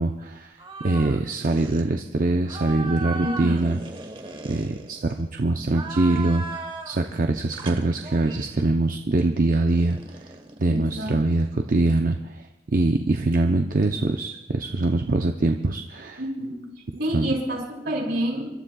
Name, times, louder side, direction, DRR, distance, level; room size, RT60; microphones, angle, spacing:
voice 1, 0.0-3.8 4.4-10.2 10.6-16.2 17.1-17.3, right 2 dB, 50° right, 4 dB, 0.6 m, -23 dB
sound 1, 0.6-1.2 1.5-1.8 2.5-5.2 5.7-7.0 7.5-8.6 9.7-11.5, right 3 dB, 30° right, 1.2 m, -37 dB
voice 2, 3.2-3.8 10.7-11.2 16.2-16.7 17.0-18.5, right 1 dB, 70° right, -2 dB, 5.4 m, -28 dB
29.0 x 12.5 x 2.3 m, 0.99 s
head